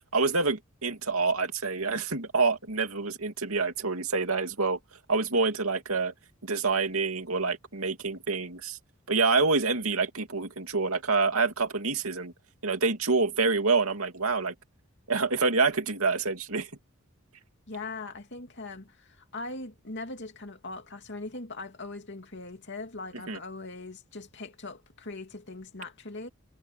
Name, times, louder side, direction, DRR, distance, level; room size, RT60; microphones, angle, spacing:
voice 1, 0.1-4.8 5.1-6.1 6.4-8.8 9.1-12.3 12.6-14.5 15.1-16.7 23.3-23.4, right 4 dB, 80° right, 2.6 m, -27 dB
voice 2, 17.7-26.3, left 3 dB, 55° left, 2.7 m, -40 dB
head